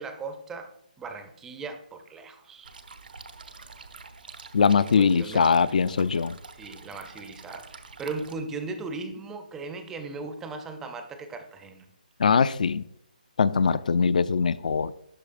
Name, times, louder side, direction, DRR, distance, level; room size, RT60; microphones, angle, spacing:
voice 1, 0.0-2.7 4.8-5.7 6.5-11.9, right 3 dB, 5° right, 7 dB, 0.4 m, -38 dB
sound 1, 2.6-8.4, right 4 dB, 85° right, 0.8 m, -46 dB
voice 2, 4.5-6.4 12.2-12.8 13.4-14.9, left 5 dB, 60° left, 17 dB, 0.3 m, -22 dB
12.0 x 4.7 x 2.4 m, 0.74 s
hypercardioid pair, 165°, 5 cm